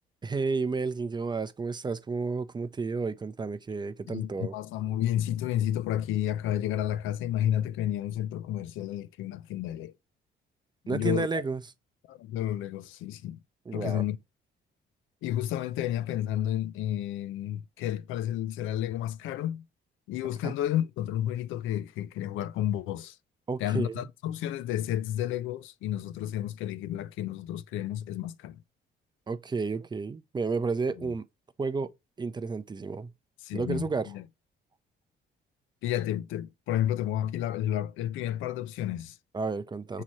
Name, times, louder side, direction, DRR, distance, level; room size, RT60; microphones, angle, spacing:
voice 1, 0.2-4.5 10.9-11.6 13.7-14.0 20.4-20.5 23.5-24.0 29.3-31.2 31.6-31.9 32.2-33.1 33.5-34.1 39.3-40.0, right 4 dB, 20° right, 0.4 m, -31 dB
voice 2, 4.1-9.9 10.8-11.4 12.1-13.4 13.7-14.2 15.2-19.6 20.1-23.2 23.6-28.6 31.0-31.1 33.4-34.2 35.8-39.2, left 12 dB, 90° left, 0.4 m, -31 dB
6.1 x 2.8 x 3.0 m
cardioid pair, 90°, 20 cm